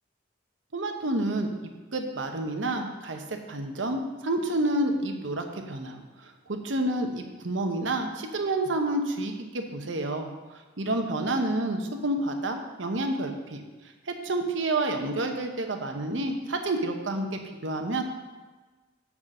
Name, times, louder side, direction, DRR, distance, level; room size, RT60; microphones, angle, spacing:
voice 1, 0.7-1.5 1.9-10.3 10.8-13.6 14.1-17.3 17.6-18.0, right 2 dB, 85° right, 5 dB, 1.0 m, -29 dB
6.2 x 5.9 x 6.6 m, 1.3 s
head